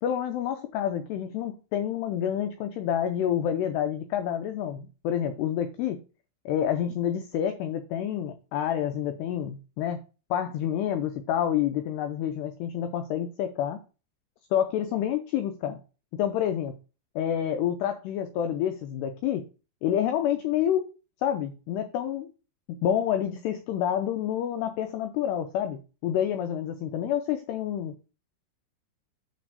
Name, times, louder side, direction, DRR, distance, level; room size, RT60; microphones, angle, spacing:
voice 1, 0.0-6.0 6.5-10.0 10.3-13.8 14.5-15.8 16.1-16.7 17.2-19.5 19.8-20.9 21.2-22.3 22.7-28.0, left 10 dB, 85° left, 8 dB, 2.3 m, -28 dB
9.5 x 3.4 x 6.7 m, 0.33 s
omnidirectional pair, 5.7 m